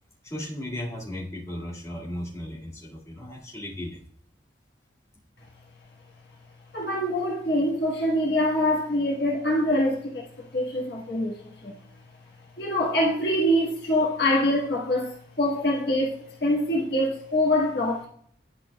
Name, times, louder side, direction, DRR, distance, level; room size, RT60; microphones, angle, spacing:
voice 1, 0.2-4.0, left 1 dB, 15° left, 2.1 m, -36 dB
voice 2, 6.7-10.2 10.5-11.7 12.6-18.1, left 1 dB, 55° left, 1.5 m, -24 dB
11.0 x 5.9 x 2.3 m
head